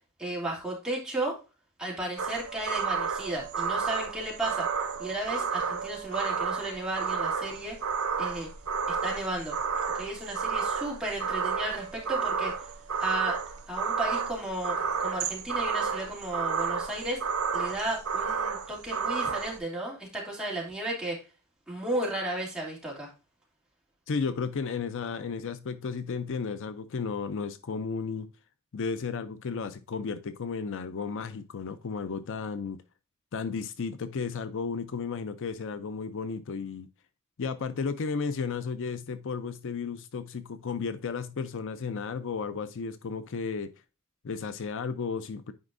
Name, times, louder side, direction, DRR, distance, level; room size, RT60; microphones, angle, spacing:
voice 1, 0.2-1.3 1.8-4.7 5.0-7.8 8.2-8.5 8.9-9.6 9.9-12.5 13.0-13.4 13.7-17.2 17.5-21.2 21.7-23.1, right 1 dB, 5° right, 2.7 m, -34 dB
sound 1, 2.2-19.6, right 5 dB, 80° right, 1.1 m, -31 dB
voice 2, 24.1-28.3 28.7-32.8 33.3-36.9 37.4-43.7 44.2-45.5, left 5 dB, 60° left, 0.5 m, -33 dB
9.6 x 5.0 x 2.6 m
head